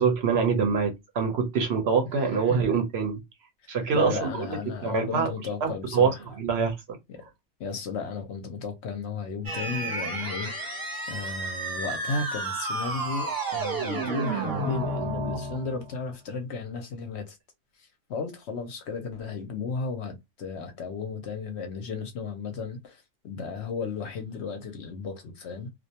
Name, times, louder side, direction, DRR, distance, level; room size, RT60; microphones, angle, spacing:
voice 1, 0.0-3.2 3.7-5.3 5.6-6.1 6.4-6.7, right 5 dB, 60° right, 0.8 m, -25 dB
voice 2, 3.6-6.3 7.1-7.3 7.6-17.4 17.7-25.7, left 4 dB, 65° left, 0.8 m, -34 dB
sound 1, 9.4-16.0, right 2 dB, 20° right, 0.7 m, -31 dB
2.4 x 2.1 x 2.8 m
omnidirectional pair, 1.4 m